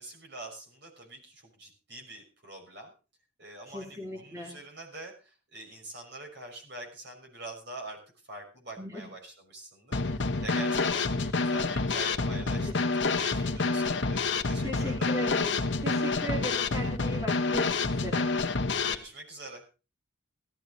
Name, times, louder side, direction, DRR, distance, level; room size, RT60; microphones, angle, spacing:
voice 1, 0.0-2.9 3.4-8.0 8.3-15.1 18.9-19.6, right 2 dB, 55° right, 2 dB, 6.0 m, -45 dB
voice 2, 3.7-4.5 8.8-9.1 11.2-11.3 12.5-12.8 13.3-13.5 14.6-18.3, right 1 dB, 15° right, 0 dB, 2.6 m, -38 dB
Drum kit / Snare drum, 9.9-19.0, left 3 dB, 60° left, 1.1 m, -28 dB
16.5 x 14.0 x 4.0 m, 0.33 s
head